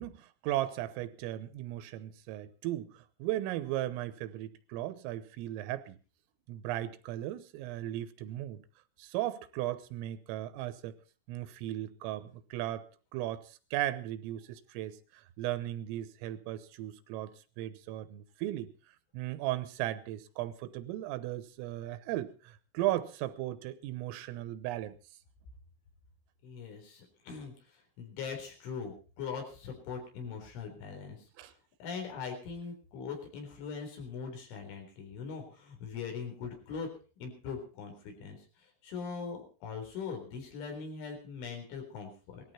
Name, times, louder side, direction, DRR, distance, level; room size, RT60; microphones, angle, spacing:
voice 1, 0.0-6.0 6.5-8.6 9.0-10.9 11.3-12.9 13.1-18.7 19.1-24.9 31.4-31.5, right 14 dB, 85° right, 13 dB, 3.7 m, -36 dB
voice 2, 26.4-31.5 31.8-36.9 37.2-42.5, left 5 dB, 70° left, 3 dB, 6.3 m, -41 dB
19.5 x 14.0 x 4.3 m, 0.36 s
omnidirectional pair, 5.8 m